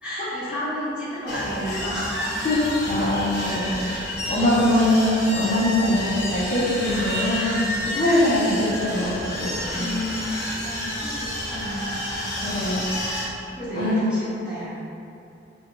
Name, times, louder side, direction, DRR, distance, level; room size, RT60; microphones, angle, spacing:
voice 1, 0.0-2.2 3.6-3.7 4.6-4.7 5.8-6.2 8.2-8.6 9.7-12.0 12.8-13.0 13.6-14.7, equal, 5° right, -12 dB, 1.0 m, -32 dB
sound 1, 1.3-13.2, left 1 dB, 60° left, 1.1 m, -30 dB
voice 2, 2.4-3.9 4.3-9.5 9.7-10.0 12.4-13.0 13.7-14.1, left 1 dB, 40° left, -9 dB, 0.6 m, -22 dB
4.5 x 2.2 x 3.2 m, 2.7 s
head